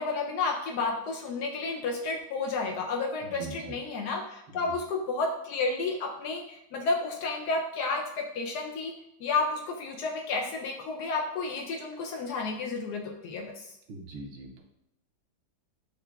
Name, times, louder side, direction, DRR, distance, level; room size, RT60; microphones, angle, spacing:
voice 1, 0.0-8.9 9.2-13.7, left 3 dB, 75° left, 2 dB, 1.0 m, -31 dB
voice 2, 3.2-3.8 4.5-4.7 13.9-14.6, right 3 dB, 85° right, 1 dB, 0.6 m, -42 dB
6.6 x 2.4 x 2.3 m, 0.78 s
omnidirectional pair, 2.0 m